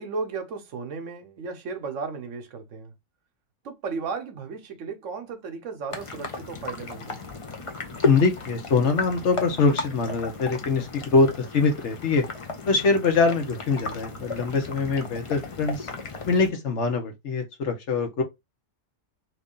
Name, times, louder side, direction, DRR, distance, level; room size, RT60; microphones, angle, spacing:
voice 1, 0.0-2.9 3.6-7.2 12.9-13.0 16.5-16.6, right 4 dB, 65° right, 1.0 m, -35 dB
sound 1, 5.9-16.5, left 3 dB, 45° left, 0.4 m, -34 dB
voice 2, 8.0-12.2 12.7-15.9 16.2-18.2, left 4 dB, 65° left, 1.0 m, -23 dB
2.9 x 2.6 x 3.6 m
omnidirectional pair, 1.4 m